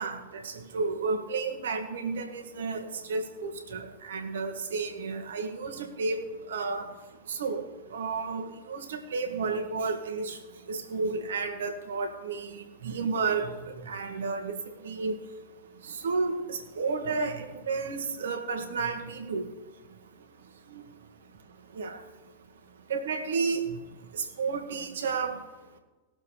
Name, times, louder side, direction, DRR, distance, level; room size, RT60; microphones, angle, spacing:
voice 1, 0.0-6.9 7.3-7.7 7.9-10.4 10.7-13.5 13.8-14.6 14.8-15.2 16.0-19.5 20.7-20.8 21.8-22.0 22.9-23.6 24.1-25.4, right 4 dB, 75° right, 6 dB, 1.8 m, -32 dB
20.5 x 7.4 x 3.3 m, 1.2 s
hypercardioid pair, 100°, 0 cm